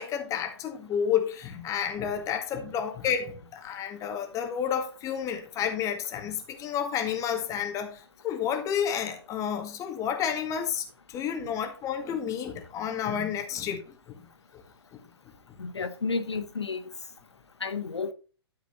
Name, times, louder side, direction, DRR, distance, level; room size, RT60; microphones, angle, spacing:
voice 1, 0.0-14.3, left 8 dB, 25° left, 1.8 m, -30 dB
voice 2, 15.6-16.9 17.6-18.1, left 4 dB, 80° left, 0.9 m, -31 dB
12.5 x 5.1 x 4.0 m
figure-of-eight pair, 120°, 14 cm